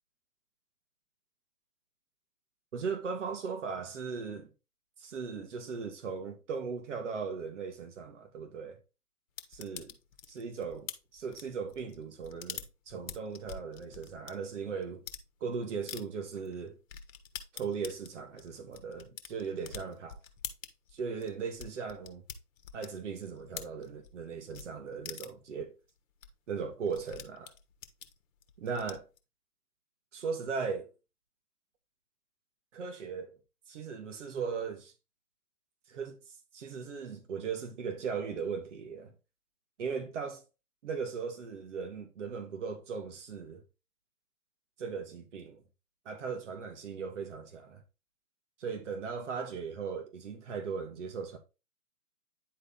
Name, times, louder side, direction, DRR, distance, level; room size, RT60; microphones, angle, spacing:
voice 1, 2.7-4.5 5.0-8.8 9.5-9.9 10.3-15.0 15.4-16.8 17.5-20.2 20.9-22.2 22.7-25.7 26.5-27.5 28.6-29.0 30.1-30.9 32.7-33.4 33.7-34.9 35.9-36.2 36.5-39.1 39.8-40.4 40.8-43.6 44.8-45.6 46.1-47.8 48.6-51.4, right 5 dB, 50° right, 1.9 m, -38 dB
sound 1, 9.4-14.3 14.8-15.2 15.9-16.0 16.4-16.5 16.9-24.2 24.5-24.7 25.0-25.5 25.9-26.0 26.2-26.3 26.5-29.2, left 7 dB, 55° left, 1.3 m, -45 dB
9.7 x 3.9 x 3.8 m
figure-of-eight pair, 140°, 46 cm